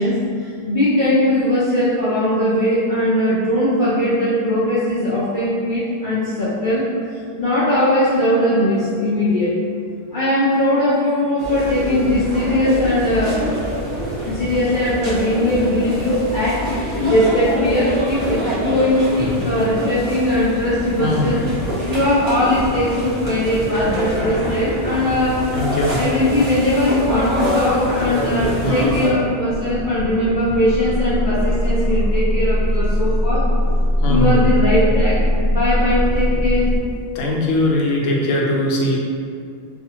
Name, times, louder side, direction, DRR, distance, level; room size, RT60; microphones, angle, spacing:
voice 1, 0.0-6.8 7.4-9.6 10.1-13.5 14.3-16.7 17.1-25.5 25.9-33.4 34.1-36.7, left 1 dB, 65° left, -9 dB, 0.5 m, -19 dB
sound 1, 11.4-29.1, equal, 40° right, 0.7 m, -25 dB
voice 2, 21.0-21.3 25.5-26.0 28.6-28.9 34.0-34.4 37.1-39.0, left 1 dB, 80° left, -2 dB, 0.9 m, -20 dB
sound 2, 29.5-36.8, equal, 5° right, 0.4 m, -20 dB
2.5 x 2.4 x 2.7 m, 2.3 s
omnidirectional pair, 1.3 m